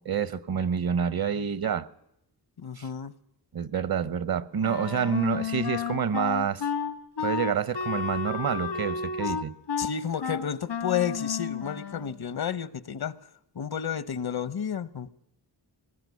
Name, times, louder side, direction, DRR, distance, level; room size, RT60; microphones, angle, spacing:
voice 1, 0.0-1.9 2.8-2.9 3.5-6.7 7.2-9.5, right 7 dB, 60° right, 1.0 m, -28 dB
voice 2, 2.6-3.1 9.2-9.3 9.8-13.2 13.5-15.1, left 8 dB, 65° left, 1.1 m, -31 dB
Wind instrument woodwind instrument, 4.6-12.2, left 6 dB, 85° left, 2.3 m, -32 dB
23.0 x 19.5 x 9.6 m
wide cardioid pair, 110°, 41 cm